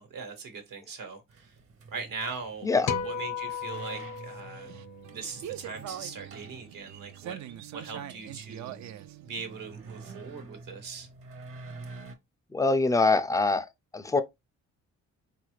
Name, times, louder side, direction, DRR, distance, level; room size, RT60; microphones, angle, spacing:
voice 1, 0.0-1.5 1.9-2.7 3.0-4.7 5.1-7.4 7.7-8.8 9.2-11.1, right 5 dB, 80° right, 1.3 m, -40 dB
sound 1, 1.3-12.2, right 3 dB, 45° right, 0.8 m, -48 dB
voice 2, 2.6-2.9 12.5-13.7 13.9-14.2, left 3 dB, 10° left, 0.4 m, -24 dB
sound 2, 2.9-5.3, left 6 dB, 55° left, 0.7 m, -35 dB
sound 3, 3.5-10.3, right 11 dB, 60° right, 0.4 m, -44 dB
4.0 x 2.5 x 3.1 m
cardioid pair, 75°, 33 cm